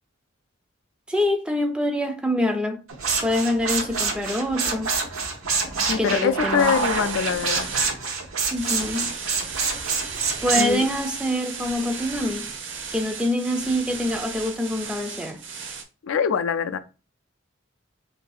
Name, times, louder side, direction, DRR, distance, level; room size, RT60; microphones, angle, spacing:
voice 1, 1.1-2.8 3.2-4.9 6.0-6.8 8.5-9.1 10.4-12.5 12.9-15.4, left 1 dB, 5° right, 0.3 m, -25 dB
sound 1, 2.9-10.7, right 4 dB, 85° right, 0.8 m, -26 dB
voice 2, 5.9-7.7 10.5-10.9 16.0-16.8, left 7 dB, 75° left, 0.4 m, -24 dB
sound 2, 6.5-7.9 8.5-15.8, right 5 dB, 60° right, 0.6 m, -35 dB
2.7 x 2.7 x 3.9 m
head